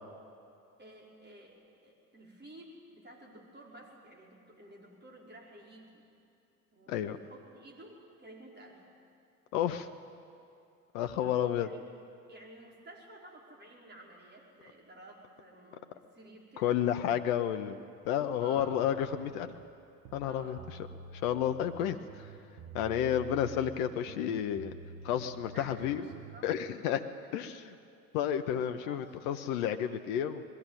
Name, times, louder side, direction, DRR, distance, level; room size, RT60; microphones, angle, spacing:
voice 1, 0.8-1.6 1.8-6.1 6.7-8.9 11.5-11.8 12.3-16.8 18.4-18.7 20.3-20.6 25.5-27.5 28.6-29.2, right 1 dB, 25° right, -1 dB, 5.1 m, -53 dB
voice 2, 9.5-9.9 10.9-11.7 16.6-17.8 18.0-19.5 20.1-20.6 21.2-22.3 22.7-24.7 25.0-26.0 26.4-27.0 27.3-27.7 28.1-30.4, left 10 dB, 65° left, 8 dB, 1.0 m, -31 dB
sound 1, 18.6-19.6 20.0-21.8 22.1-23.8 24.1-26.5, right 5 dB, 55° right, 1.8 m, -48 dB
20.5 x 14.5 x 9.2 m, 2.6 s
figure-of-eight pair, 65°, 45 cm